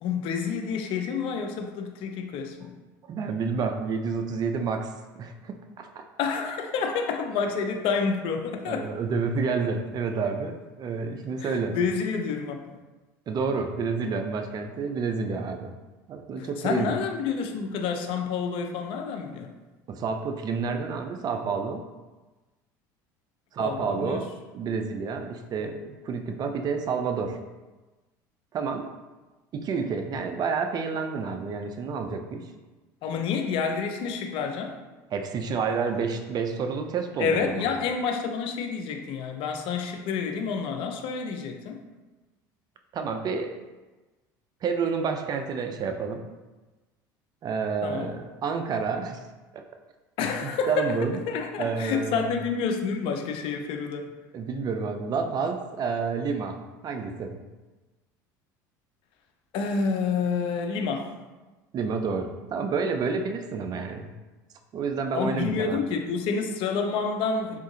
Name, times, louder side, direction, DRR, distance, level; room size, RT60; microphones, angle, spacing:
voice 1, 0.0-2.7 6.2-8.9 11.4-12.8 16.4-19.5 23.6-24.3 33.0-34.8 37.2-41.8 47.8-48.1 50.2-54.1 59.5-61.1 65.1-67.6, left 5 dB, 60° left, 4 dB, 0.5 m, -29 dB
voice 2, 3.0-4.9 5.2-5.9 8.7-11.8 13.3-15.7 16.1-16.9 19.9-21.8 23.5-24.3 24.5-27.4 28.5-28.9 29.5-32.5 35.1-37.6 42.9-43.5 44.6-46.3 47.4-49.3 49.5-49.6 50.4-51.2 51.6-52.4 54.3-57.4 61.7-64.1 64.7-65.8, right 5 dB, 40° right, 5 dB, 0.4 m, -29 dB
3.6 x 2.5 x 2.7 m, 1.2 s
hypercardioid pair, 80°, 10 cm